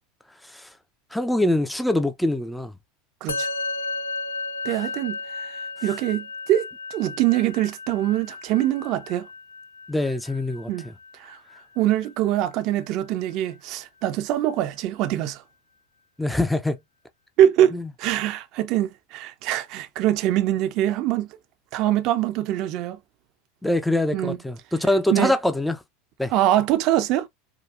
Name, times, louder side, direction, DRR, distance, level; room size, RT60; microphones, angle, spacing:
voice 1, 1.1-2.7 9.9-10.7 16.2-16.8 17.7-17.9 23.6-25.8 26.2-26.3, left 1 dB, 5° left, 0.7 m, -24 dB
Musical instrument, 3.3-12.8, left 3 dB, 85° left, 0.5 m, -35 dB
voice 2, 4.6-9.3 10.7-10.9 11.2-11.4 11.8-15.4 17.4-21.3 21.7-23.0 24.1-24.4 25.1-25.3 26.3-27.3, right 12 dB, 55° right, 0.7 m, -23 dB
5.0 x 2.4 x 2.5 m
hypercardioid pair, 90°, 0 cm